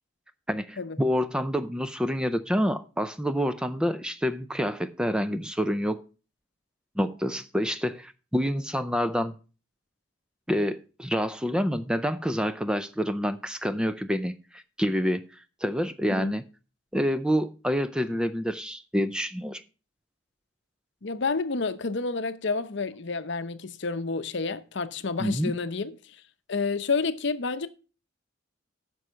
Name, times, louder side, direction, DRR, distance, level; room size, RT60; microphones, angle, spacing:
voice 1, 0.5-6.0 7.0-9.3 10.5-16.4 16.9-19.6 25.2-25.5, equal, 5° right, 0.5 m, -27 dB
voice 2, 21.0-25.9 26.5-27.7, left 4 dB, 60° left, 0.7 m, -29 dB
9.6 x 6.3 x 5.6 m
head